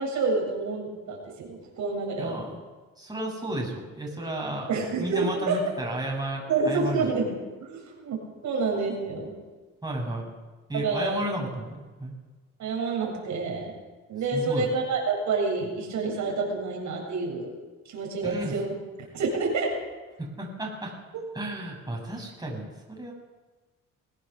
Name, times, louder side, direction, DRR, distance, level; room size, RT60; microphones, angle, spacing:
voice 1, 0.0-2.4 4.7-5.6 6.5-7.3 7.6-8.2 8.4-9.3 10.7-11.2 12.6-13.7 14.1-17.5 17.9-18.7 19.1-19.7 21.1-21.2, right 4 dB, 75° right, -1 dB, 7.6 m, -28 dB
voice 2, 2.2-2.6 3.0-4.7 5.0-7.1 9.8-10.3 10.7-12.1 14.3-14.7 18.2-18.6 20.2-20.9 21.3-23.1, right 1 dB, 15° right, -1 dB, 7.3 m, -33 dB
22.0 x 17.0 x 7.0 m, 1.3 s
cardioid pair, 90°, 30 cm